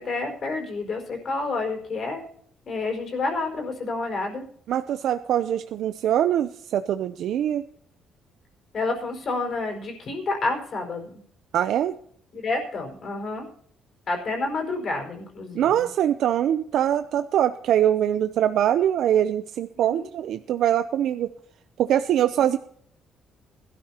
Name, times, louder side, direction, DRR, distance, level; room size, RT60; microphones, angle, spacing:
voice 1, 0.0-2.2 2.6-4.4 8.7-11.2 12.3-13.4 14.1-15.9 19.7-20.1, left 3 dB, 45° left, 3 dB, 5.0 m, -29 dB
voice 2, 4.7-7.6 11.5-12.0 15.5-21.3 21.8-22.6, right 10 dB, 70° right, 10 dB, 0.6 m, -23 dB
21.0 x 12.5 x 2.9 m, 0.62 s
cardioid pair, 125°, 0 cm